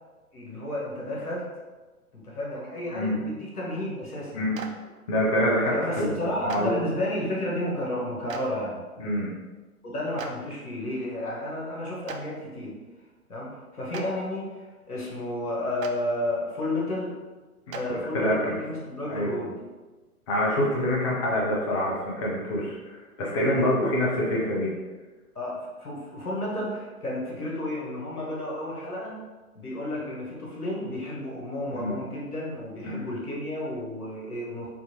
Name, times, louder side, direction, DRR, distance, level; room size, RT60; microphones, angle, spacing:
voice 1, 0.3-1.5 2.1-4.5 5.7-8.8 9.8-12.8 13.3-17.1 17.7-19.5 23.4-24.0 25.3-29.2 29.5-34.7, left 1 dB, 85° left, -4 dB, 1.4 m, -32 dB
Clapping, 4.5-4.7 6.5-6.6 8.3-8.4 10.2-10.3 12.1-12.2 13.9-14.0 15.8-15.9 17.7-17.8, right 7 dB, 65° right, 0.5 m, -36 dB
voice 2, 5.1-6.7 9.0-9.3 17.7-17.8 18.1-18.6 19.1-19.4 20.3-24.7 31.7-32.0 32.8-33.1, left 1 dB, 25° left, -4 dB, 0.5 m, -26 dB
4.3 x 2.6 x 2.8 m, 1.3 s
figure-of-eight pair, 120°, 44 cm